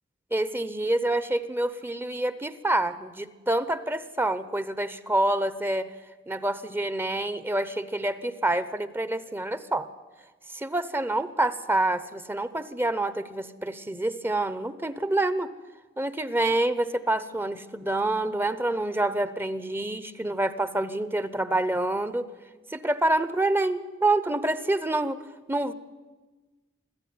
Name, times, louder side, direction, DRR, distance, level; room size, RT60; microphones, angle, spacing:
voice 1, 0.3-5.9 6.3-9.9 10.5-15.5 16.0-22.3 22.7-25.2 25.5-25.7, right 2 dB, 10° right, 15 dB, 0.9 m, -27 dB
25.0 x 15.5 x 9.5 m, 1.3 s
head